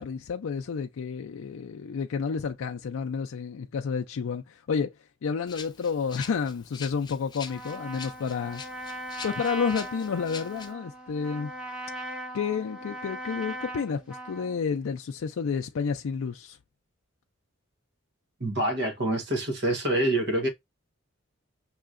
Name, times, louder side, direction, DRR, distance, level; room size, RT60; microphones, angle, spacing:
voice 1, 0.0-4.9 5.2-8.6 9.2-11.5 12.3-16.6, left 6 dB, 85° left, 0.4 m, -30 dB
Rattle (instrument), 5.5-10.7, left 6 dB, 20° left, 0.4 m, -44 dB
Trumpet, 7.5-14.6, right 1 dB, 5° right, 1.0 m, -39 dB
voice 2, 18.4-20.5, right 1 dB, 55° right, 1.2 m, -26 dB
5.5 x 3.0 x 2.4 m
head